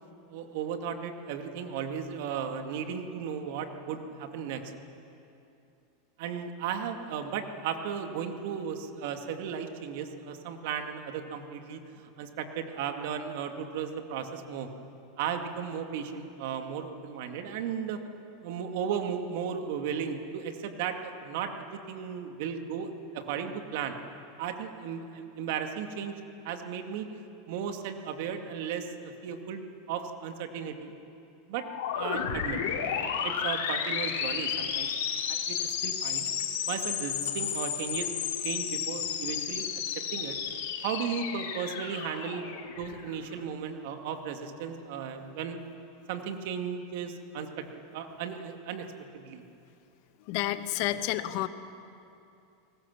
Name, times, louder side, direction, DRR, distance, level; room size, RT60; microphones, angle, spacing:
voice 1, 0.3-4.7 6.2-14.7 15.2-18.0 18.4-24.0 24.4-27.1 27.5-30.9 31.5-31.7 31.9-32.6 32.9-34.9 35.3-36.3 36.7-38.2 38.4-39.7 40.1-40.3 40.8-42.5 42.8-45.6 46.1-48.9 49.1-49.4, right 7 dB, 60° right, 5 dB, 2.2 m, -35 dB
sound 1, 31.6-43.2, left 8 dB, 85° left, 3.1 m, -32 dB
voice 2, 50.2-51.5, left 14 dB, 55° left, 11 dB, 1.2 m, -30 dB
29.5 x 19.5 x 7.3 m, 2.7 s
supercardioid pair, 150°, 0 cm